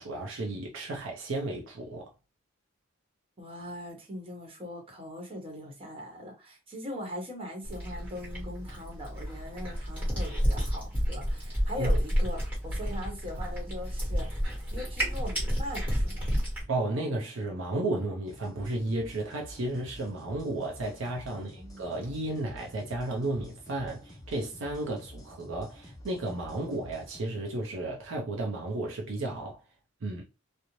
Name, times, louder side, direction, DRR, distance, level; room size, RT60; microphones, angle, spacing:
voice 1, 0.0-2.1 11.8-11.9 16.6-29.6 30.0-30.2, right 2 dB, 65° right, 0.5 m, -33 dB
voice 2, 3.4-14.4 14.7-16.3 21.3-21.8, left 1 dB, 25° right, 1.0 m, -40 dB
Cat, 7.6-16.6, equal, 10° right, 1.2 m, -30 dB
sound 1, 18.3-27.2, left 1 dB, 15° left, 0.5 m, -49 dB
2.5 x 2.0 x 3.0 m
head